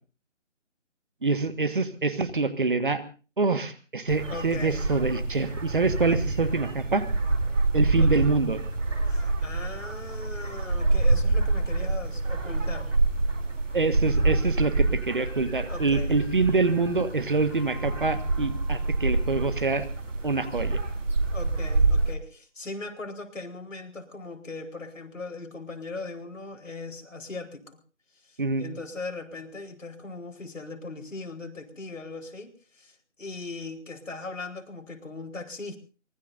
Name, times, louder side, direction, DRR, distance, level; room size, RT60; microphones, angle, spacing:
voice 1, 1.2-3.0 3.4-7.1 7.7-8.6 13.7-19.9 20.2-20.8 28.4-28.7, right 3 dB, 40° right, 12 dB, 1.6 m, -26 dB
sound 1, 4.1-22.1, right 2 dB, 80° right, 3.4 m, -27 dB
voice 2, 4.3-4.8 8.0-8.2 9.1-12.9 15.7-16.1 21.3-27.8 28.2-35.8, left 3 dB, 90° left, 4 dB, 4.4 m, -39 dB
Keyboard (musical), 17.5-20.2, right 2 dB, 15° left, 1.8 m, -51 dB
24.5 x 20.5 x 2.7 m, 0.36 s
figure-of-eight pair, 180°, 37 cm